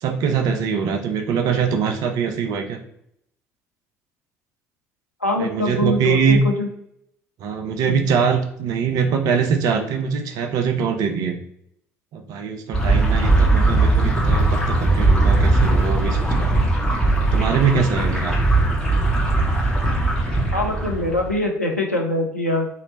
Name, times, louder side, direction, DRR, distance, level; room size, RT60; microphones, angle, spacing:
voice 1, 0.0-2.8 5.4-6.4 7.4-11.4 12.1-16.7 17.3-18.4, right 6 dB, 50° right, 5 dB, 0.6 m, -23 dB
voice 2, 5.2-6.7 7.8-8.1 20.5-22.7, left 1 dB, 90° left, 0 dB, 0.6 m, -23 dB
sound 1, 12.7-21.3, right 2 dB, 10° left, 1.3 m, -19 dB
3.1 x 3.1 x 3.9 m, 0.71 s
figure-of-eight pair, 55°, 8 cm